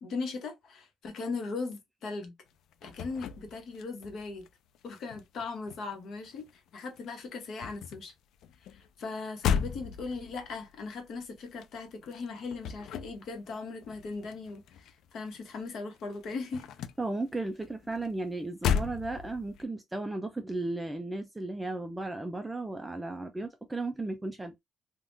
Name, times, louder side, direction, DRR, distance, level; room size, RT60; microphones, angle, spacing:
voice 1, 0.0-2.3 2.8-4.5 4.8-8.1 8.7-16.7, left 4 dB, 55° left, 1.0 m, -39 dB
sound 1, 2.5-4.5 4.7-6.7 7.0-15.7 15.9-19.6, left 7 dB, 70° left, 0.3 m, -36 dB
voice 2, 17.0-24.6, right 2 dB, 10° right, 0.3 m, -35 dB
3.5 x 2.3 x 2.5 m
cardioid pair, 170°, 0 cm